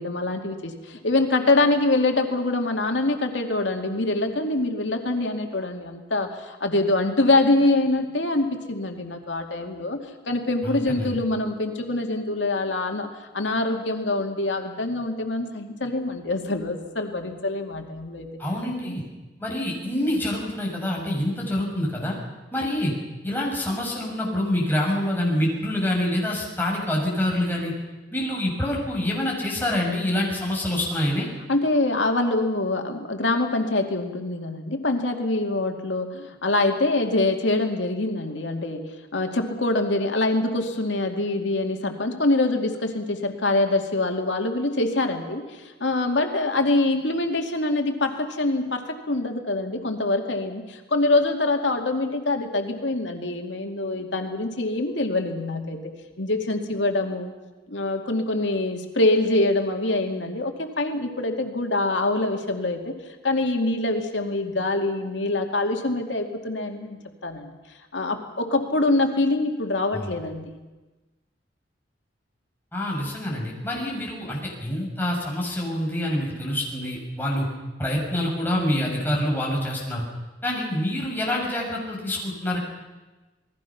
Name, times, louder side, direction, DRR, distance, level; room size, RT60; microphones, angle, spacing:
voice 1, 0.0-10.0 10.3-18.4 18.8-19.0 31.5-57.3 57.7-63.0 63.2-67.5 67.9-70.6, left 2 dB, 90° left, 4 dB, 2.4 m, -25 dB
voice 2, 10.6-11.1 18.4-19.0 19.4-22.1 22.5-22.9 23.2-27.7 28.1-31.3 69.9-70.1 72.7-77.5 77.8-80.0 80.4-82.6, left 1 dB, 10° left, -3 dB, 6.2 m, -26 dB
28.0 x 20.0 x 5.9 m, 1.2 s
head